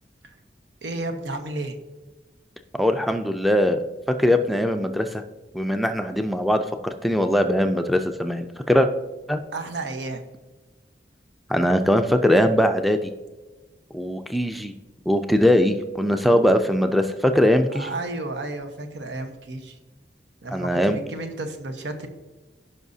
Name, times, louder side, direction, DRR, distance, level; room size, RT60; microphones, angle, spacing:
voice 1, 0.8-1.7 9.5-10.2 17.7-19.8 20.4-22.1, right 2 dB, 90° right, 6 dB, 1.1 m, -32 dB
voice 2, 2.8-3.8 4.2-5.2 5.5-6.6 7.0-8.9 9.3-9.4 11.5-13.1 13.9-14.7 15.1-17.9 20.5-21.0, equal, ahead, 7 dB, 0.4 m, -21 dB
16.0 x 5.4 x 2.7 m, 1.2 s
head